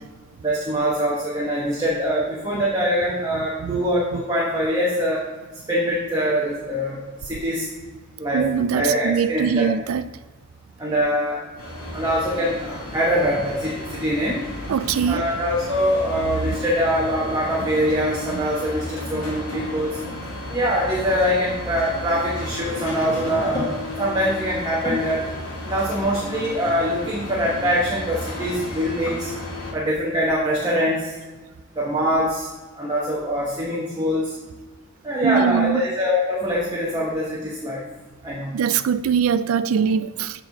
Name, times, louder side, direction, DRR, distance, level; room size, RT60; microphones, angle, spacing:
voice 1, 0.4-5.2 5.7-7.7 8.2-8.5 8.7-9.7 10.8-11.4 11.9-14.4 15.1-20.0 20.5-25.2 25.6-29.3 29.7-31.1 31.8-32.5 32.8-34.4 35.0-35.7 36.0-37.8 38.2-38.6, equal, 20° right, -6 dB, 1.1 m, -23 dB
voice 2, 8.3-10.0 14.7-15.2 18.3-18.4 19.1-19.2 35.2-35.8 38.5-40.4, right 7 dB, 75° right, 14 dB, 0.3 m, -22 dB
sound 1, 11.6-29.7, left 1 dB, 70° left, 2.2 m, -33 dB
sound 2, 19.5-24.3 24.7-25.2 25.5-25.7 26.1-26.2 27.2-28.3 28.6-29.4, left 2 dB, 20° left, 1.9 m, -38 dB
7.8 x 4.5 x 3.9 m, 1.3 s
head